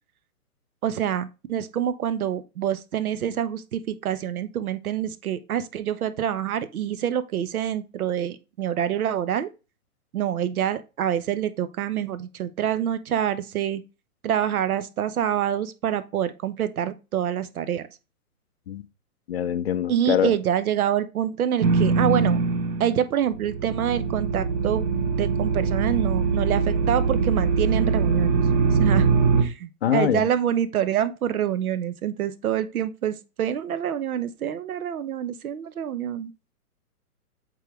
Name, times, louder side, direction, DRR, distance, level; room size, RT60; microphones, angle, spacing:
voice 1, 0.8-9.5 10.1-13.8 14.2-17.9 19.9-22.4 22.8-24.9 25.2-28.4 28.7-36.3, right 10 dB, 65° right, 0.9 m, -26 dB
voice 2, 19.3-20.3 29.8-30.2, left 10 dB, 45° left, 0.5 m, -24 dB
sound 1, 21.6-23.0 23.3-29.4, right 5 dB, 25° right, 0.6 m, -22 dB
8.0 x 3.9 x 3.2 m
hypercardioid pair, 145°, 46 cm